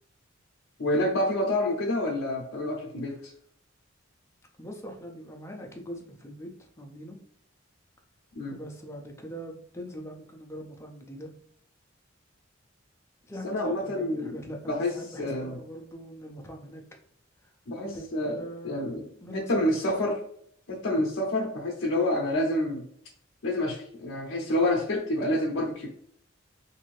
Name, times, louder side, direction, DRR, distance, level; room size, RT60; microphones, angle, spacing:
voice 1, 0.8-3.1 8.3-8.6 13.4-14.4 14.7-15.6 17.7-19.0 19.3-20.2 20.7-22.9 23.4-25.9, left 1 dB, 65° left, -2 dB, 0.5 m, -28 dB
voice 2, 4.6-7.2 8.5-11.3 13.3-16.8 17.4-17.5 17.8-18.8 19.2-19.6, equal, 15° left, 1 dB, 0.5 m, -42 dB
2.6 x 2.5 x 3.1 m, 0.66 s
head